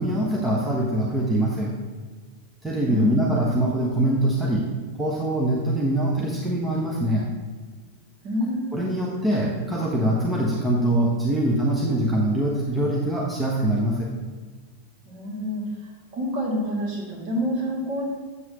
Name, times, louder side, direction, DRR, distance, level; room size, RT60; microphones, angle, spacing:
voice 1, 0.0-1.8 2.6-4.7 5.0-7.3 8.7-14.1, right 1 dB, 10° right, -3 dB, 1.1 m, -23 dB
voice 2, 2.9-3.3 8.2-8.8 15.1-18.1, equal, 40° right, -4 dB, 2.5 m, -28 dB
8.1 x 7.7 x 3.0 m, 1.5 s
figure-of-eight pair, 90°, 0 cm